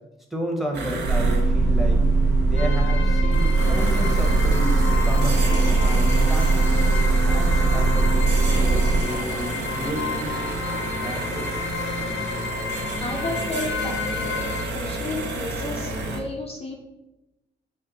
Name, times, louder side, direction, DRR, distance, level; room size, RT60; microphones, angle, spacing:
voice 1, 0.3-2.0 2.5-6.7 7.2-10.4 11.0-11.5, right 1 dB, ahead, 1 dB, 1.0 m, -32 dB
sound 1, 0.7-16.2, right 2 dB, 60° right, 1.0 m, -30 dB
sound 2, 1.0-9.0, right 3 dB, 85° right, 1.4 m, -20 dB
sound 3, 2.6-14.7, left 7 dB, 75° left, 0.5 m, -33 dB
voice 2, 13.0-14.5 14.7-16.8, left 2 dB, 30° left, -1 dB, 0.6 m, -32 dB
6.2 x 2.1 x 3.9 m, 1.0 s
cardioid pair, 90°, 20 cm